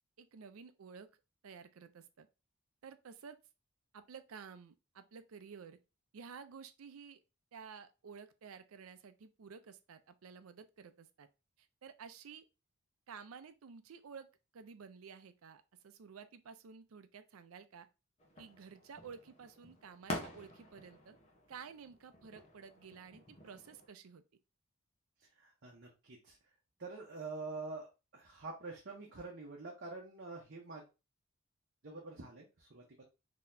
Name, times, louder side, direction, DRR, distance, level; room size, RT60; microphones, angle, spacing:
voice 1, 0.2-1.1 1.4-2.3 2.8-3.4 3.9-5.8 6.1-7.2 7.5-11.3 11.6-12.4 13.1-14.3 14.5-17.9 18.4-21.2 21.5-24.2, right 6 dB, 85° right, 0.5 m, -52 dB
sound 1, 18.2-23.9, left 1 dB, 30° left, 0.9 m, -48 dB
voice 2, 25.4-26.4 26.8-27.9 28.1-30.8 31.8-33.0, right 3 dB, 55° right, 0.8 m, -46 dB
3.9 x 2.9 x 2.6 m
head